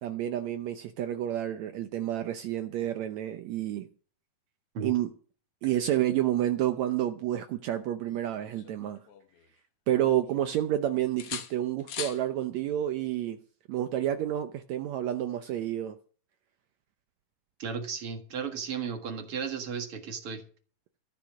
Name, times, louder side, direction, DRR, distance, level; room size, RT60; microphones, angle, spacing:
voice 1, 0.0-3.9 4.8-5.1 5.6-9.0 9.9-13.4 13.7-16.0, right 12 dB, 85° right, 1.5 m, -29 dB
sound 1, 8.0-9.6 10.0-10.8 11.2-12.2 14.1-14.3, left 9 dB, 70° left, 1.4 m, -42 dB
voice 2, 17.6-20.4, right 6 dB, 45° right, 2.0 m, -35 dB
13.5 x 10.0 x 6.2 m
omnidirectional pair, 4.3 m